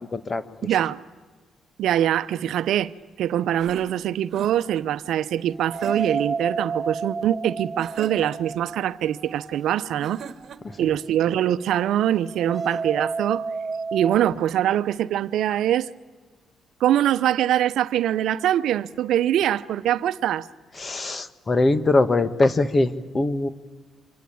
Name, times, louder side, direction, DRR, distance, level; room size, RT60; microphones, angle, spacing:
voice 1, 0.1-0.4 20.8-23.5, left 2 dB, 30° left, 1.6 m, -22 dB
voice 2, 0.6-1.0 1.8-2.9 3.2-10.2 10.8-13.4 13.9-15.9 16.8-20.5, right 11 dB, 80° right, 0.8 m, -23 dB
sound 1, 3.6-4.9 5.7-6.3 7.8-8.6 10.0-10.8, right 6 dB, 60° right, 1.5 m, -41 dB
sound 2, 5.5-10.5 10.8-10.9 12.2-14.2, right 4 dB, 20° right, 2.0 m, -31 dB
25.5 x 25.0 x 8.6 m
cardioid pair, 90°, 0 cm